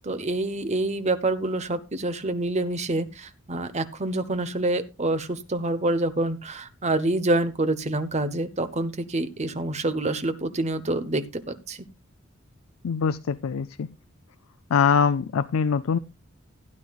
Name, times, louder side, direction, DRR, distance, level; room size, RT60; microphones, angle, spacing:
voice 1, 0.0-11.8, right 2 dB, 35° right, 11 dB, 1.0 m, -27 dB
voice 2, 12.8-13.9 14.7-16.0, left 6 dB, 85° left, 11 dB, 0.4 m, -23 dB
16.0 x 9.6 x 2.4 m, 0.25 s
head